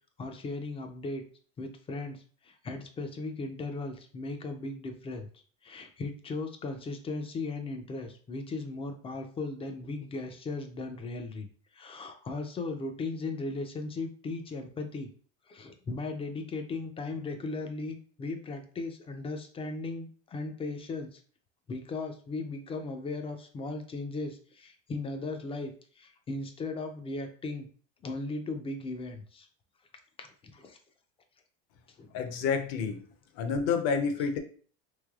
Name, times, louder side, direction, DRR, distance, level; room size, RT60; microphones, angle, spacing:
voice 1, 0.2-1.2 1.6-5.3 5.6-11.5 11.7-15.1 15.5-21.2 21.7-27.7 28.0-29.5 30.2-30.8 32.0-32.1, left 3 dB, 20° left, 6 dB, 0.4 m, -37 dB
voice 2, 32.1-33.0 33.3-34.4, left 6 dB, 55° left, 7 dB, 0.6 m, -29 dB
3.3 x 3.1 x 2.3 m, 0.43 s
supercardioid pair, 135°, 31 cm